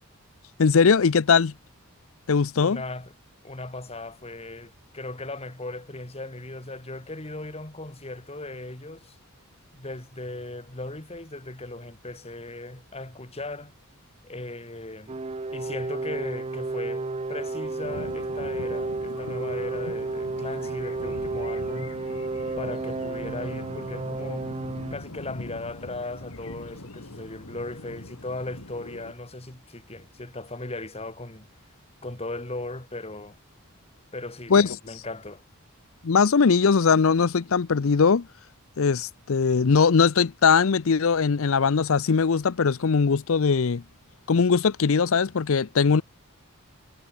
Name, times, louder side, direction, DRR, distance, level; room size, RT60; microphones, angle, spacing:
voice 1, 0.6-1.5 2.3-2.8 34.5-34.7 36.0-38.3 38.8-43.8 44.3-46.0, left 5 dB, 65° left, 0.6 m, -20 dB
voice 2, 2.6-3.1 3.4-9.2 9.7-13.7 14.2-15.2 15.5-22.0 22.6-24.6 24.9-31.5 32.0-33.4 34.1-35.4, left 2 dB, 25° left, 2.2 m, -37 dB
sound 1, 15.1-25.0, right 3 dB, 25° right, 0.6 m, -32 dB
sound 2, 17.8-29.1, left 2 dB, 85° left, 2.6 m, -42 dB
head